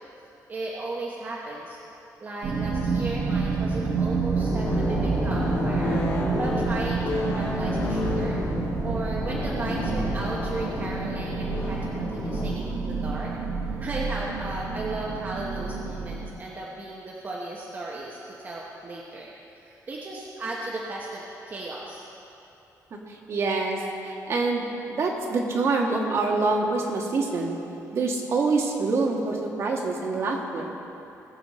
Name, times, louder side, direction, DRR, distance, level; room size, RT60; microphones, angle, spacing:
voice 1, 0.5-1.8 2.2-6.0 6.4-8.4 8.8-13.3 13.7-19.3 19.6-22.1, right 2 dB, 30° right, -3 dB, 1.1 m, -35 dB
sound 1, 2.4-16.3, right 4 dB, 70° right, 1.5 m, -29 dB
sound 2, 4.3-12.5, left 2 dB, 65° left, 3.2 m, -30 dB
voice 2, 23.3-27.6 27.9-30.7, right 3 dB, 50° right, 0 dB, 1.5 m, -26 dB
20.5 x 7.2 x 4.2 m, 2.9 s
cardioid pair, 160°, 6 cm